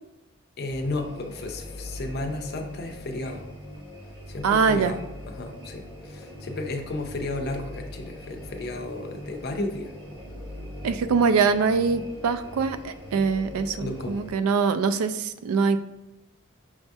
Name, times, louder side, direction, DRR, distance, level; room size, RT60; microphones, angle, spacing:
voice 1, 0.6-3.5 4.3-5.0 5.3-9.9 13.8-14.2, left 2 dB, 50° left, 4 dB, 0.5 m, -33 dB
sound 1, 0.7-14.3, left 1 dB, 20° right, 1.1 m, -41 dB
voice 2, 4.4-4.9 10.8-15.8, right 5 dB, 90° right, 11 dB, 0.3 m, -23 dB
5.9 x 2.6 x 2.3 m, 1.0 s
head